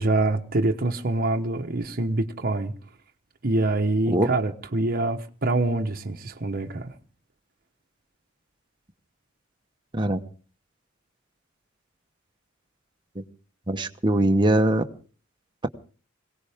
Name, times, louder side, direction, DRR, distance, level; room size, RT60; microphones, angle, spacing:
voice 1, 0.0-2.7 3.4-6.9, right 2 dB, 45° right, 1.1 m, -25 dB
voice 2, 13.7-14.8, right 1 dB, 25° right, 1.0 m, -21 dB
22.0 x 17.5 x 3.5 m
head